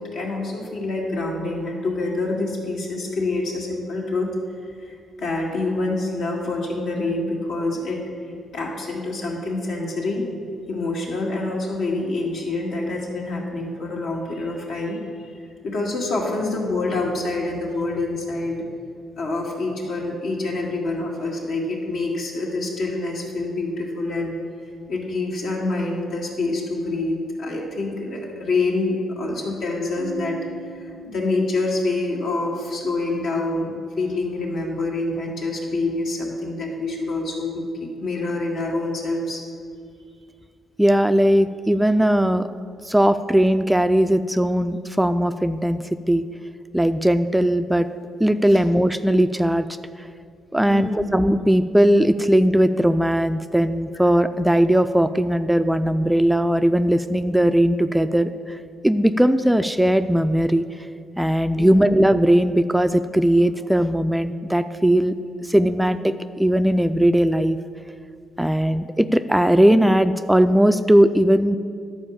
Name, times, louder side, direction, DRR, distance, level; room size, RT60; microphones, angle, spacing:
voice 1, 0.0-4.3 4.6-8.0 8.5-10.2 10.7-15.4 15.6-18.6 19.2-24.4 24.9-30.4 30.7-39.4 48.5-48.6 50.6-51.0 61.5-61.8, left 2 dB, 75° left, -2 dB, 2.2 m, -26 dB
Keyboard (musical), 30.0-32.6, right 9 dB, 70° right, 0.5 m, -41 dB
voice 2, 40.8-42.5 42.8-46.2 46.7-47.9 48.2-49.7 50.0-50.1 50.5-60.7 61.2-65.1 65.4-67.6 68.4-71.6, equal, 5° right, 10 dB, 0.3 m, -18 dB
11.0 x 4.7 x 7.2 m, 2.3 s
cardioid pair, 90°, 0 cm